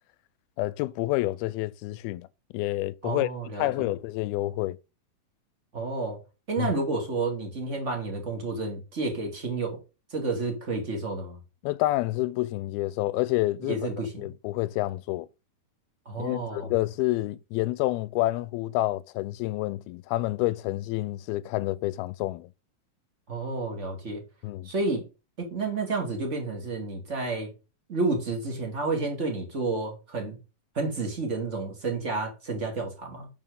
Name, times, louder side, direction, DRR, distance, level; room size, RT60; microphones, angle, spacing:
voice 1, 0.6-2.3 2.5-3.3 3.6-4.8 6.6-6.7 11.6-13.8 14.2-15.3 16.2-22.5 24.4-24.7, left 18 dB, 90° left, 2.5 m, -28 dB
voice 2, 3.0-3.9 5.7-6.2 6.5-9.8 10.1-11.4 13.6-14.3 16.1-16.7 23.3-24.2 24.6-25.1 25.4-27.5 27.9-30.4 30.7-33.3, right 3 dB, 25° right, 2.1 m, -30 dB
9.0 x 6.2 x 3.8 m
omnidirectional pair, 4.3 m